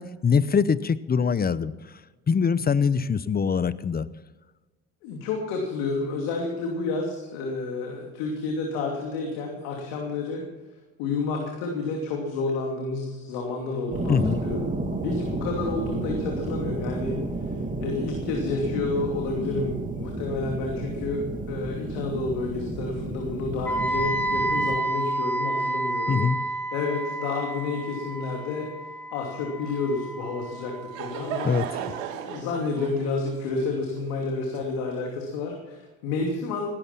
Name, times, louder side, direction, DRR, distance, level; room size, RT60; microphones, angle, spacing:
voice 1, 0.0-1.7 2.3-4.1 14.1-14.4 26.1-26.4 31.4-31.7, left 6 dB, 25° left, 17 dB, 0.8 m, -23 dB
voice 2, 5.0-10.5 11.0-17.2 17.8-26.3 26.7-28.7 29.1-31.5 32.3-36.7, left 3 dB, 75° left, 1 dB, 2.9 m, -30 dB
sound 1, 13.9-24.8, right 2 dB, 20° right, 2.6 m, -32 dB
Wind instrument woodwind instrument, 23.7-31.6, right 1 dB, 5° left, 4.1 m, -30 dB
Laughter / Crowd, 30.5-35.2, right 9 dB, 85° right, 1.8 m, -36 dB
17.5 x 13.0 x 5.9 m, 1.2 s
hypercardioid pair, 75°, 38 cm